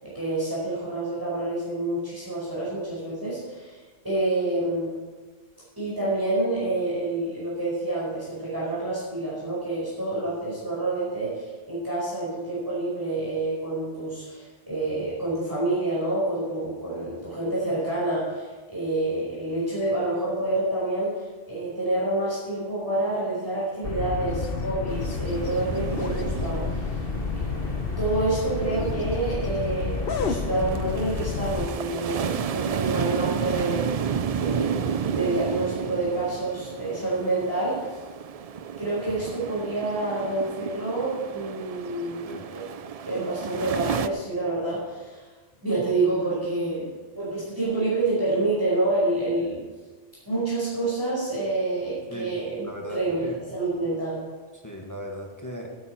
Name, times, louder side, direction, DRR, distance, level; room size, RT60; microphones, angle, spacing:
voice 1, 0.0-3.8 4.0-4.9 5.8-27.0 27.3-33.8 34.3-34.8 35.1-37.9 38.8-42.6 43.0-45.2 45.6-46.9 47.1-49.6 50.3-52.6 52.9-54.3, right 2 dB, 15° right, -8 dB, 5.1 m, -28 dB
sound 1, 23.8-31.7, left 4 dB, 55° left, 1.0 m, -29 dB
sound 2, 24.9-44.1, right 7 dB, 65° right, 0.3 m, -32 dB
voice 2, 52.1-53.4 54.5-55.8, equal, 15° left, 0 dB, 1.6 m, -38 dB
17.0 x 9.7 x 4.5 m, 1.3 s
omnidirectional pair, 1.2 m